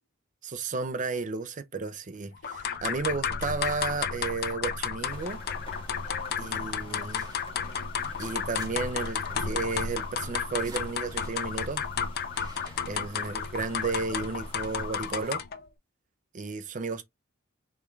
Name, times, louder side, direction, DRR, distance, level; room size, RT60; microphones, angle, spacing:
voice 1, 0.4-2.3 2.8-5.4 6.4-7.2 8.2-11.8 12.9-15.4 16.3-17.0, right 4 dB, 35° right, 0.5 m, -33 dB
voice 2, 2.4-2.8 6.1-7.7 13.8-14.4, left 3 dB, 70° left, 1.0 m, -49 dB
sound 1, 2.4-15.6, left 6 dB, 50° left, 0.5 m, -32 dB
sound 2, 4.9-5.3 6.1-6.3 7.1-7.5 8.0-8.7 9.0-9.1 9.4-9.5 10.2-11.7 12.3-13.3 13.6-13.8, right 2 dB, 20° right, 1.2 m, -50 dB
sound 3, 5.1-15.3, left 1 dB, 25° left, 1.9 m, -50 dB
3.6 x 3.1 x 3.2 m
head